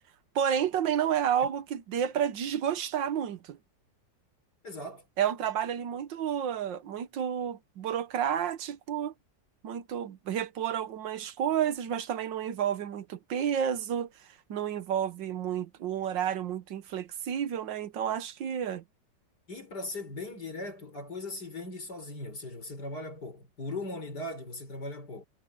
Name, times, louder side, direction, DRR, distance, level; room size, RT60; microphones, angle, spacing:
voice 1, 0.3-3.6 5.2-9.1 9.6-18.8, right 9 dB, 85° right, 1.7 m, -31 dB
voice 2, 4.6-5.1 19.5-25.3, left 2 dB, 60° left, 6.2 m, -39 dB
omnidirectional pair, 2.0 m